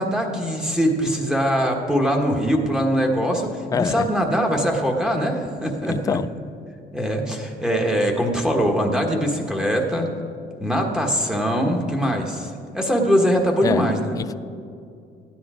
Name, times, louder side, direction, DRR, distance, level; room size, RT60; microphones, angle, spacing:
voice 1, 0.0-6.2 6.9-10.1 10.6-14.1, equal, 5° right, 0 dB, 1.4 m, -22 dB
voice 2, 3.7-4.1 5.8-6.3 13.6-13.9 14.2-14.3, left 6 dB, 20° left, 14 dB, 0.3 m, -25 dB
14.0 x 10.0 x 5.0 m, 2.5 s
cardioid pair, 110°, 17 cm